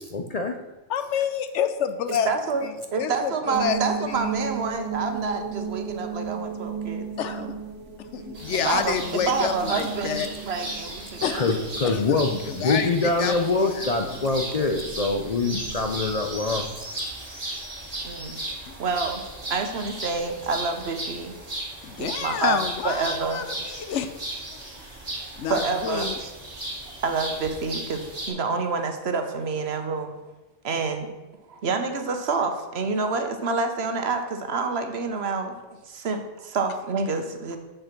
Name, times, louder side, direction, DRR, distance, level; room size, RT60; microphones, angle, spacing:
voice 1, 0.0-0.6 11.3-16.7, left 3 dB, 45° left, 4 dB, 0.6 m, -25 dB
voice 2, 0.9-2.3 2.6-3.8 4.1-4.3 7.2-7.5 8.1-10.3 11.2-11.5 11.8-14.5 18.7-18.8 21.8-24.1 25.4-26.2, left 8 dB, 75° left, 10 dB, 1.0 m, -29 dB
voice 3, 2.2-7.5 8.6-9.0 9.3-11.4 18.0-18.4 18.8-21.4 22.0-23.4 24.7-24.8 25.4-26.3 27.0-30.1 30.6-31.1 31.5-35.5 35.8-37.6, right 4 dB, 60° right, 6 dB, 1.1 m, -28 dB
sound 1, 3.5-16.5, right 6 dB, 80° right, 1.4 m, -36 dB
sound 2, 8.3-28.3, right 1 dB, 30° right, 2.1 m, -36 dB
6.9 x 6.6 x 5.9 m, 1.1 s
omnidirectional pair, 1.2 m